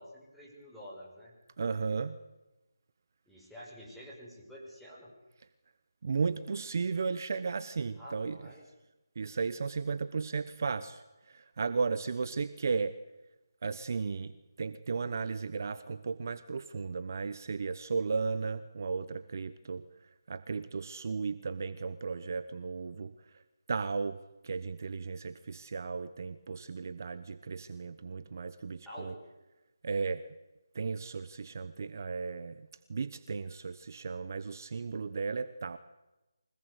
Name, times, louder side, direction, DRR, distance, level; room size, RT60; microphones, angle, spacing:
voice 1, 0.0-1.3 3.3-5.1 8.0-8.6 28.8-29.2, equal, ahead, -8 dB, 5.9 m, -48 dB
voice 2, 1.6-2.2 6.0-8.4 9.2-13.0 13.6-19.8 20.3-23.1 23.7-29.1 29.8-30.3 30.7-35.8, right 4 dB, 45° right, 13 dB, 1.1 m, -35 dB
25.0 x 19.0 x 8.3 m, 1.0 s
figure-of-eight pair, 165°, 2 cm